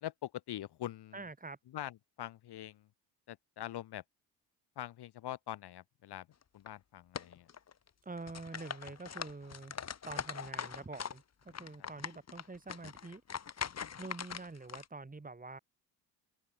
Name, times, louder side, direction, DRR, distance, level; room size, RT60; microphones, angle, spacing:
voice 1, 0.0-1.2 1.7-2.9 3.3-4.0 4.8-6.3 6.5-7.5 11.8-11.9, left 13 dB, 55° left, 2.4 m, -43 dB
voice 2, 1.1-1.6 8.0-9.7 10.0-13.2 14.0-15.6, right 3 dB, 15° right, 4.7 m, -46 dB
sound 1, 6.4-6.7 7.2-7.9 8.2-11.2 11.5-14.9, left 7 dB, 30° left, 1.8 m, -42 dB
open air
hypercardioid pair, 60°, 48 cm